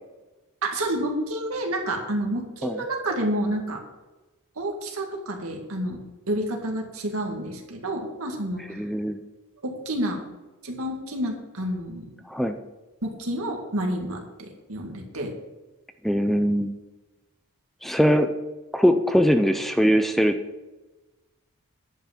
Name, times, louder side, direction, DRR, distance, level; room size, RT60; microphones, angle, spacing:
voice 1, 0.6-3.8 4.6-6.0 6.3-8.6 9.6-10.2 10.6-12.1 13.0-15.3, right 1 dB, 70° right, 2 dB, 2.1 m, -29 dB
voice 2, 8.8-9.2 12.3-12.6 16.0-16.7 17.8-18.3 18.7-20.4, equal, ahead, 7 dB, 0.4 m, -21 dB
10.5 x 5.8 x 7.2 m, 1.1 s
head